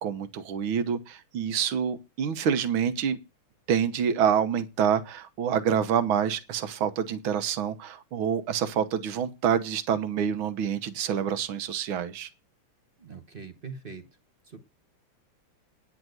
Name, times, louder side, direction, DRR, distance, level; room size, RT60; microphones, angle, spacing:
voice 1, 0.0-3.2 3.7-12.3, right 8 dB, 70° right, 1.8 m, -27 dB
voice 2, 13.0-14.0 14.4-14.6, right 5 dB, 35° right, 1.0 m, -42 dB
10.0 x 6.2 x 7.8 m
omnidirectional pair, 2.3 m